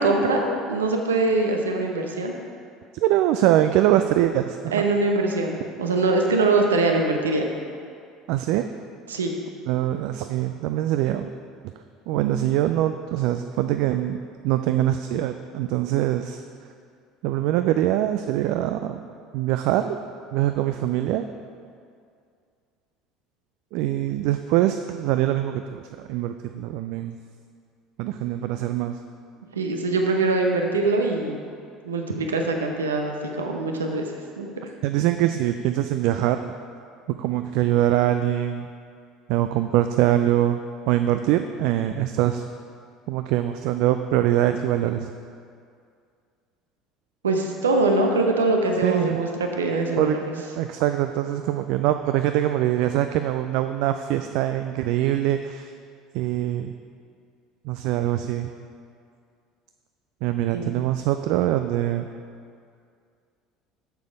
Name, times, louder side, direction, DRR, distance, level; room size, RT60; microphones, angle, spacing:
voice 1, 0.0-2.3 4.7-7.4 9.1-9.3 29.5-31.4 31.8-34.1 34.4-34.5 47.2-50.3 60.5-60.7, right 2 dB, 80° right, 3 dB, 0.8 m, -23 dB
voice 2, 2.9-4.8 8.3-8.7 9.7-11.3 12.1-14.2 14.4-16.4 17.2-19.0 19.3-20.0 20.3-21.3 23.7-27.1 28.0-29.0 34.8-36.4 37.1-38.7 39.3-40.6 40.9-42.4 43.1-45.1 48.8-49.2 50.0-50.2 50.5-55.7 56.1-56.7 57.6-58.5 60.2-62.1, right 13 dB, 60° right, 8 dB, 0.3 m, -23 dB
7.9 x 6.8 x 5.1 m, 2.3 s
figure-of-eight pair, 65°, 0 cm